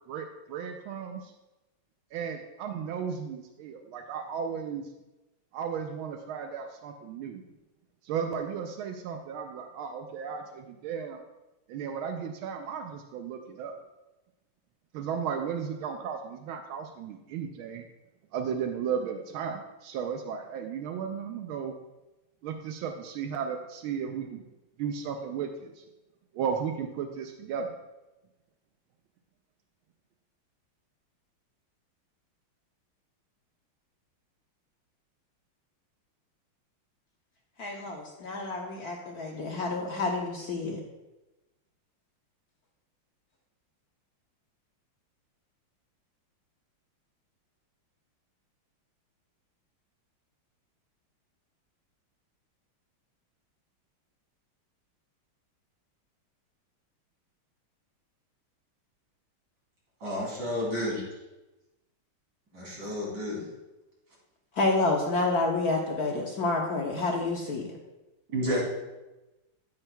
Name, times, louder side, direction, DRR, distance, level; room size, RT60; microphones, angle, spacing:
voice 1, 0.1-1.3 2.1-4.9 5.5-7.4 8.0-11.2 11.7-13.8 14.9-17.9 18.3-21.7 22.4-24.4 24.8-25.8 26.3-27.7, right 7 dB, 80° right, 5 dB, 1.4 m, -35 dB
voice 2, 37.6-40.8 64.5-67.8, left 3 dB, 60° left, 0 dB, 1.1 m, -29 dB
voice 3, 60.0-61.0 62.5-63.4 68.3-68.6, equal, 55° right, -5 dB, 3.7 m, -31 dB
9.9 x 8.8 x 2.3 m, 1.0 s
omnidirectional pair, 2.3 m